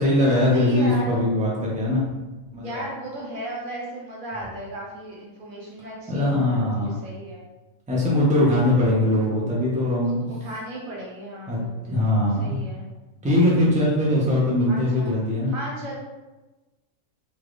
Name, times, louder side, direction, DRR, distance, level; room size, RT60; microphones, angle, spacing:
voice 1, 0.0-2.1 2.5-2.9 6.1-7.0 7.9-10.2 11.5-11.6 11.9-12.6 13.2-15.5, left 1 dB, 10° right, -5 dB, 0.4 m, -21 dB
voice 2, 0.5-1.2 2.5-7.4 10.0-12.1 12.4-12.9 14.7-15.1 15.5-15.9, right 1 dB, 80° right, -4 dB, 1.3 m, -36 dB
3.3 x 2.9 x 2.5 m, 1.1 s
omnidirectional pair, 1.4 m